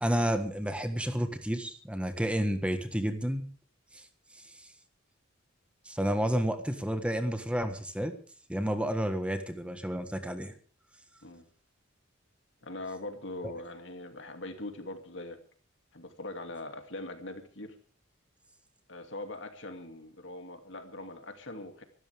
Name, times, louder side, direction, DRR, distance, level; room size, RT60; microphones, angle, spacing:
voice 1, 0.0-3.5 3.9-4.0 4.5-4.7 5.8-8.2 8.5-10.5, equal, 5° right, 7 dB, 1.5 m, -30 dB
voice 2, 12.6-15.4 15.9-17.8 18.9-21.8, left 2 dB, 65° left, 6 dB, 2.6 m, -42 dB
25.5 x 13.0 x 3.6 m, 0.43 s
head